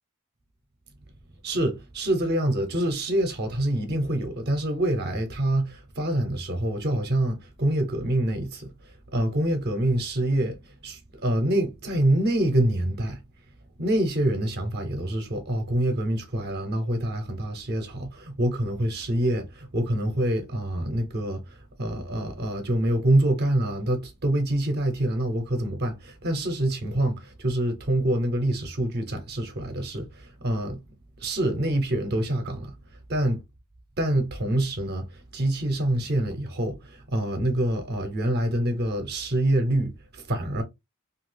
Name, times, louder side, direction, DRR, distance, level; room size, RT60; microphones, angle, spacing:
voice 1, 1.4-13.2 13.8-30.8 31.2-32.7 33.1-33.4 34.0-40.6, right 1 dB, 45° right, 0.7 m, -26 dB
2.8 x 2.4 x 3.2 m
head